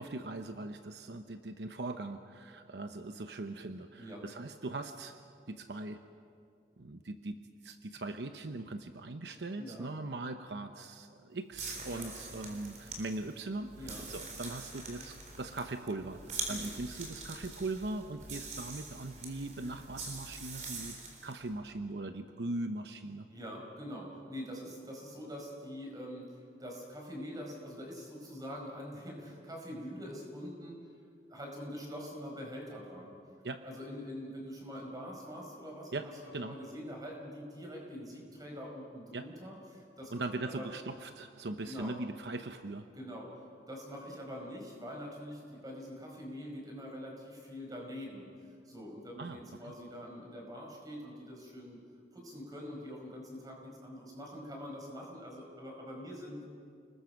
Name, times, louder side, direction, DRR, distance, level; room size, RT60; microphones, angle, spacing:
voice 1, 0.0-5.2 5.5-6.0 6.8-7.4 7.6-21.0 21.2-23.3 33.4-33.6 35.9-36.1 36.3-36.6 39.1-39.3 40.1-42.8 49.2-49.7, right 2 dB, 75° right, 7 dB, 0.9 m, -40 dB
voice 2, 9.6-9.9 11.9-12.1 13.8-14.1 16.5-16.7 23.3-30.8 31.3-33.1 33.6-36.1 36.4-40.1 40.4-40.6 41.6-41.9 42.9-43.3 43.7-51.8 52.1-56.4, equal, 20° right, 0 dB, 5.1 m, -44 dB
sound 1, 11.5-21.4, right 3 dB, 40° right, 4.0 m, -44 dB
29.5 x 20.5 x 5.9 m, 2.4 s
head